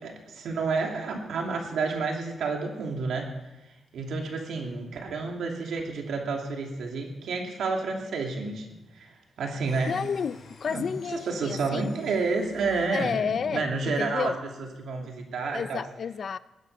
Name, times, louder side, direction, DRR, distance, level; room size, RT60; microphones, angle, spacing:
voice 1, 0.0-3.3 3.9-9.9 10.7-14.3 14.8-15.8, right 4 dB, 80° right, 2.6 m, -30 dB
sound 1, 9.6-13.2, left 3 dB, 80° left, 3.9 m, -52 dB
voice 2, 9.9-11.9 12.9-13.7 14.0-14.4 15.0-15.1 15.5-16.4, left 6 dB, 45° left, 0.4 m, -31 dB
20.0 x 10.0 x 5.3 m
wide cardioid pair, 165°, 0 cm